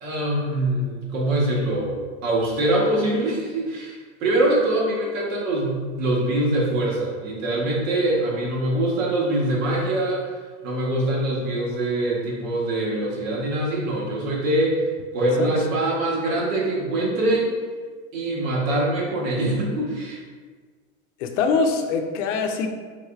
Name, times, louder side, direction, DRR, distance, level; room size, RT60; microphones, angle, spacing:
voice 1, 0.0-10.3 10.6-14.8 15.1-17.5 18.1-20.2, right 1 dB, 75° right, -3 dB, 1.2 m, -23 dB
voice 2, 21.2-22.7, left 4 dB, 65° left, 5 dB, 0.5 m, -23 dB
3.5 x 3.2 x 2.4 m, 1.5 s
supercardioid pair, 145°, 40 cm